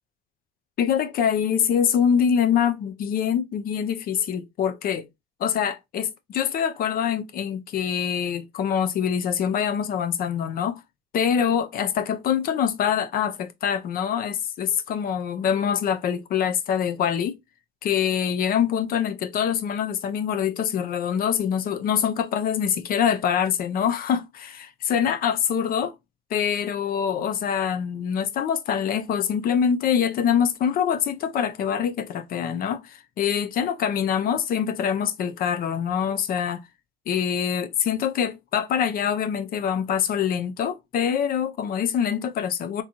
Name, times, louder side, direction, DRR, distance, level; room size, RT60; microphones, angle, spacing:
voice 1, 0.8-5.1 5.4-10.8 11.1-17.4 17.8-25.9 26.3-36.6 37.1-42.8, left 8 dB, 60° left, 0.6 m, -24 dB
3.7 x 3.0 x 2.7 m
cardioid pair, 110°, 17 cm